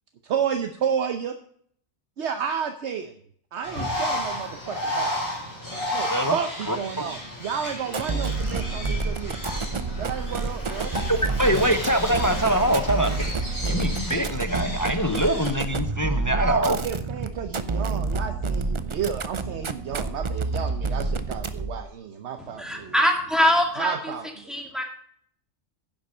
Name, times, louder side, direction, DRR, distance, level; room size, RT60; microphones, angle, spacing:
voice 1, 0.3-1.4 2.2-3.2 3.5-5.2 5.9-9.4 10.0-10.9 16.3-22.9 23.8-24.5, right 7 dB, 70° right, 7 dB, 1.0 m, -31 dB
Bird, 3.6-15.6, left 1 dB, 55° left, 5.0 m, -33 dB
sound 1, 7.9-21.8, right 3 dB, 35° right, 0.5 m, -29 dB
voice 2, 11.1-13.3 13.7-16.8, equal, 20° left, 8 dB, 0.6 m, -23 dB
voice 3, 22.4-23.9 24.5-24.8, equal, ahead, 2 dB, 2.1 m, -23 dB
10.5 x 7.6 x 5.4 m, 0.62 s
omnidirectional pair, 1.2 m